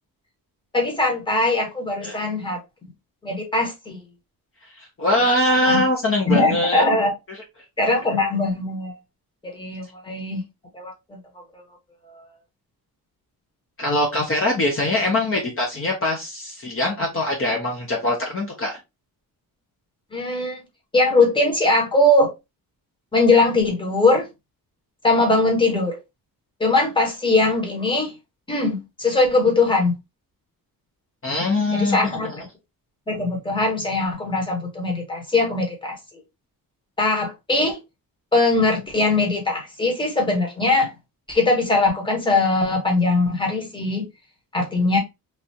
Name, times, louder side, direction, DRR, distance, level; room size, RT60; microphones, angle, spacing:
voice 1, 0.7-2.9 3.2-4.0 5.5-5.8 6.3-7.1 7.8-8.9 9.4-10.4 10.7-11.2 11.5-11.6 12.1-12.2 20.1-20.6 20.9-22.3 23.1-24.3 25.0-26.0 26.6-28.1 28.5-29.9 31.7-32.5 33.1-35.9 37.0-37.8 38.3-40.9 41.3-44.1 44.5-45.0, left 2 dB, 15° left, 0.9 m, -21 dB
voice 2, 4.8-6.8 13.8-18.8 31.2-32.3, left 1 dB, 35° left, 0.7 m, -22 dB
3.3 x 2.4 x 2.7 m
wide cardioid pair, 155°, 37 cm